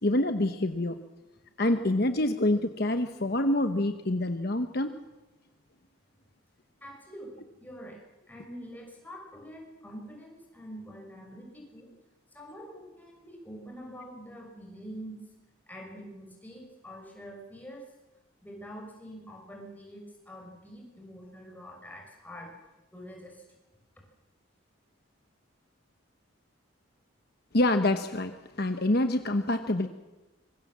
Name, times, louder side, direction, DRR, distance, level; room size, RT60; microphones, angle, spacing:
voice 1, 0.0-1.0 1.6-5.0 27.5-29.9, left 1 dB, 50° left, 7 dB, 1.1 m, -26 dB
voice 2, 6.8-11.9 12.3-15.3 15.7-17.9 18.4-22.5 22.9-23.4, equal, 10° left, 0 dB, 5.9 m, -45 dB
25.5 x 23.5 x 7.5 m, 1.1 s
head